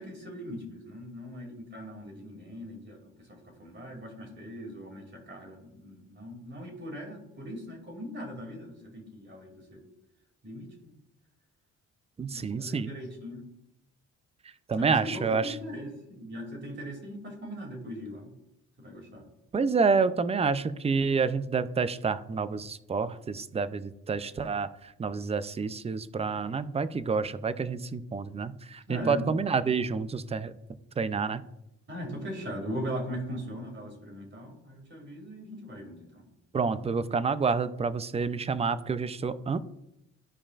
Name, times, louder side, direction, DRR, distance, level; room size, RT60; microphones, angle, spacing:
voice 1, 0.0-9.8 10.4-10.9 12.3-13.5 14.8-18.3 18.8-19.2 28.9-29.3 31.9-36.3, equal, 40° right, 2 dB, 2.6 m, -40 dB
voice 2, 12.2-13.0 14.7-15.6 19.5-30.5 31.0-31.4 36.5-39.6, right 5 dB, 20° right, 14 dB, 0.5 m, -28 dB
13.5 x 4.9 x 2.5 m, 0.82 s
cardioid pair, 90°, 30 cm